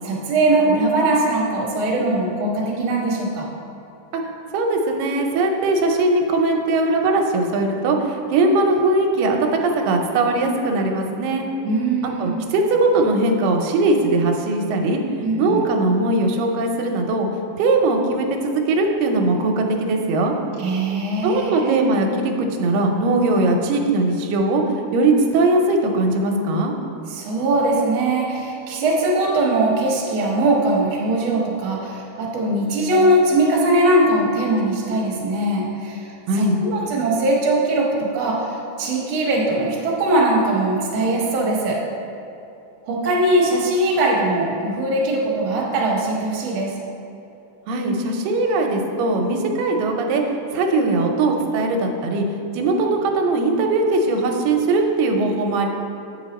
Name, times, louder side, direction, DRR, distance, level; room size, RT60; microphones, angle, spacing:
voice 1, 0.0-3.5 11.6-12.5 15.2-15.6 20.6-21.9 27.1-41.8 42.8-46.7, right 2 dB, 55° right, -3 dB, 1.5 m, -21 dB
voice 2, 4.5-11.5 12.2-15.0 15.4-17.3 17.6-20.3 21.2-24.6 24.9-26.7 36.3-36.6 47.7-50.2 50.5-52.2 52.5-55.7, right 2 dB, 85° right, 3 dB, 2.4 m, -20 dB
8.3 x 5.5 x 4.1 m, 2.8 s
omnidirectional pair, 3.8 m